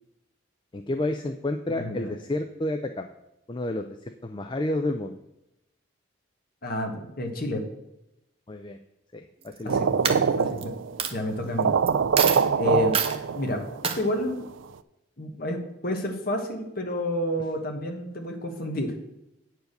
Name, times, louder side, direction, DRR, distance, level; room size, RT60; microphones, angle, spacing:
voice 1, 0.7-3.1 3.5-5.2 8.5-8.8 9.1-9.8, left 1 dB, 25° left, 6 dB, 0.4 m, -30 dB
voice 2, 1.7-2.1 6.6-7.6 9.6-10.7 11.1-11.7 12.6-13.0 13.3-14.5 15.2-19.1, left 1 dB, 45° left, 3 dB, 1.4 m, -30 dB
Coin (dropping), 9.4-9.7 10.0-10.6 11.0-11.1 11.9-12.0 12.2-12.5 12.9-13.2 13.8-14.0, right 7 dB, 30° right, 0.6 m, -26 dB
sound 1, 9.7-11.0 11.3-11.4 11.6-13.8, right 6 dB, 70° right, 0.4 m, -24 dB
9.1 x 4.7 x 6.6 m, 0.89 s
head